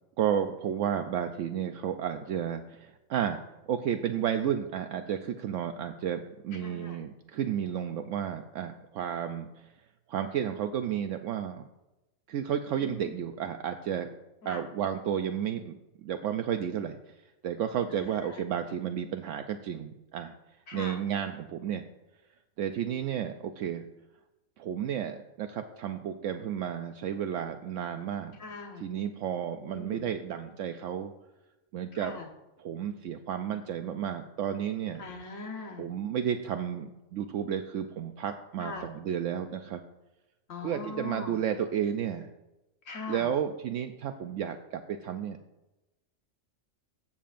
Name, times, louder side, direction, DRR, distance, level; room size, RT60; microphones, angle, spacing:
voice 1, 0.2-3.4 3.7-9.7 10.1-11.6 12.3-14.1 14.4-17.0 17.4-20.3 20.7-21.8 22.6-23.8 24.6-28.4 28.8-31.1 31.7-32.1 32.6-35.0 35.8-39.8 40.6-42.3 43.1-45.4, right 9 dB, 75° right, 7 dB, 0.9 m, -32 dB
voice 2, 6.6-7.0 12.8-13.1 14.4-14.6 17.9-18.4 20.7-21.0 28.4-28.8 29.7-30.0 31.9-32.3 35.0-35.9 38.6-38.9 40.5-41.4 42.9-43.3, left 3 dB, 85° left, 2 dB, 1.6 m, -41 dB
15.5 x 7.2 x 2.5 m, 1.0 s
omnidirectional pair, 1.4 m